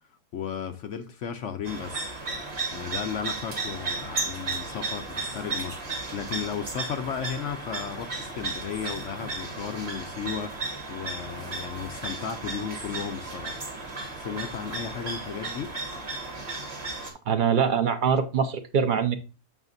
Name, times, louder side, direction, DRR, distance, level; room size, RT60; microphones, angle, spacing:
voice 1, 0.3-2.1 2.7-10.6 10.9-13.6 14.2-15.7, left 7 dB, 65° left, 0.8 m, -34 dB
sound 1, 1.6-17.1, right 3 dB, 40° right, 1.8 m, -34 dB
voice 2, 17.3-19.1, right 7 dB, 65° right, 0.5 m, -23 dB
7.2 x 5.8 x 2.5 m
omnidirectional pair, 1.7 m